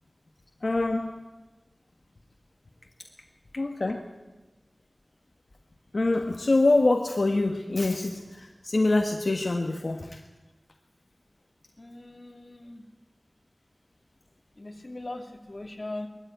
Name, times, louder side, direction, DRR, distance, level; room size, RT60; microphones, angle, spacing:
voice 1, 0.6-1.2 3.6-4.0 5.9-10.2, left 2 dB, 70° left, 3 dB, 1.4 m, -25 dB
voice 2, 11.8-12.8 14.6-16.1, left 2 dB, 45° left, 3 dB, 2.6 m, -40 dB
21.0 x 14.0 x 9.2 m, 1.2 s
wide cardioid pair, 50°, 0 cm